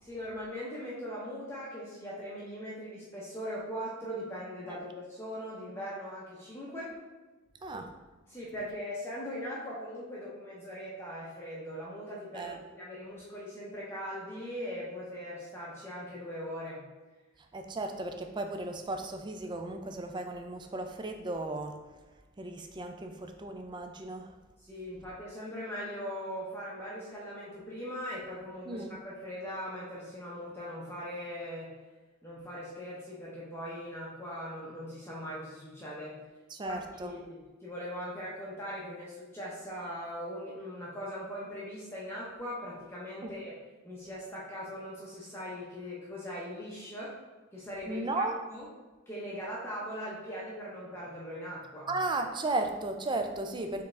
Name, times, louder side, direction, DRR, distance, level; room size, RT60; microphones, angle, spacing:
voice 1, 0.0-6.9 8.3-16.8 24.6-31.7 32.2-36.1 36.6-43.5 43.8-47.1 47.5-48.7 49.1-51.9, equal, 10° left, -6 dB, 0.7 m, -40 dB
voice 2, 7.6-7.9 12.3-12.6 17.5-21.8 22.4-24.3 28.7-28.9 36.5-37.1 43.2-43.3 47.9-48.4 51.9-53.8, right 2 dB, 20° right, 5 dB, 0.4 m, -35 dB
4.8 x 3.5 x 3.2 m, 1.2 s
head